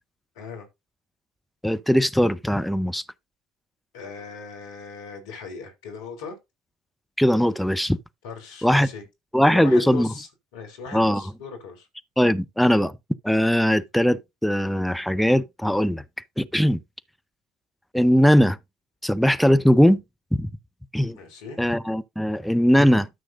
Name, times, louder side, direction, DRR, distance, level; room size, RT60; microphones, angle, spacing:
voice 1, 0.3-0.7 3.9-6.4 8.2-9.0 9.4-11.9 21.1-21.6, left 5 dB, 70° left, 3.2 m, -38 dB
voice 2, 1.6-3.0 7.2-8.0 8.6-8.9 9.3-10.1 10.9-11.2 12.2-12.9 13.2-16.0 16.4-16.8 17.9-18.6 19.0-20.0 20.3-20.5 20.9-21.2 21.6-23.1, equal, ahead, 0.8 m, -20 dB
13.0 x 6.3 x 2.6 m
hypercardioid pair, 60°, 2 cm